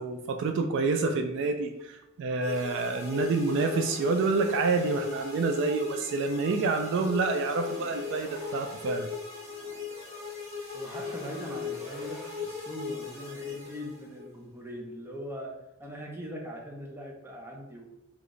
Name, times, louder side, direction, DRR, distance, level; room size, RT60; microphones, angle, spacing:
voice 1, 0.0-9.1, right 3 dB, 60° right, 6 dB, 0.3 m, -28 dB
sound 1, 2.4-14.2, left 5 dB, 30° right, 1.3 m, -38 dB
voice 2, 10.7-15.5 15.8-17.9, equal, 10° right, -1 dB, 0.6 m, -41 dB
3.8 x 2.4 x 3.2 m, 0.93 s
head